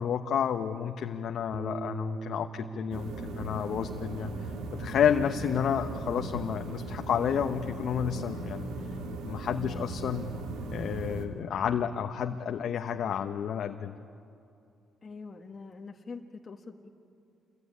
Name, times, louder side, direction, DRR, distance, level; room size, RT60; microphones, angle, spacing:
voice 1, 0.0-8.7 9.2-10.3 10.7-14.0, left 8 dB, 70° left, 5 dB, 1.0 m, -30 dB
Bass guitar, 1.5-7.8, right 3 dB, 35° right, 2.7 m, -44 dB
sound 1, 2.9-11.3, right 2 dB, 90° right, 2.4 m, -38 dB
voice 2, 15.0-16.9, left 4 dB, 35° left, 1 dB, 1.5 m, -44 dB
28.0 x 22.0 x 9.8 m, 2.6 s
cardioid pair, 90°, 0 cm